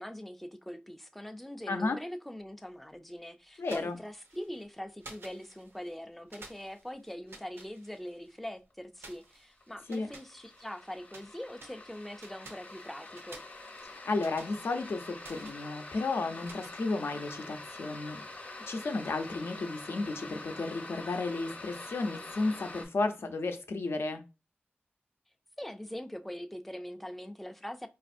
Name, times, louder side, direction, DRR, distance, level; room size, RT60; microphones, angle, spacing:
voice 1, 0.0-13.4 25.6-27.9, equal, 5° left, 0.3 m, -42 dB
voice 2, 1.7-2.0 3.6-4.0 9.9-10.1 13.8-18.2 18.7-24.2, left 3 dB, 80° left, 0.5 m, -33 dB
sound 1, 3.5-4.7 5.0-6.0 6.3-8.4 9.0-11.3 11.6-17.4, right 2 dB, 75° right, 0.6 m, -54 dB
sound 2, 8.7-8.8 9.2-22.9, left 2 dB, 40° left, 0.8 m, -46 dB
4.2 x 2.4 x 2.5 m
wide cardioid pair, 95°, 4 cm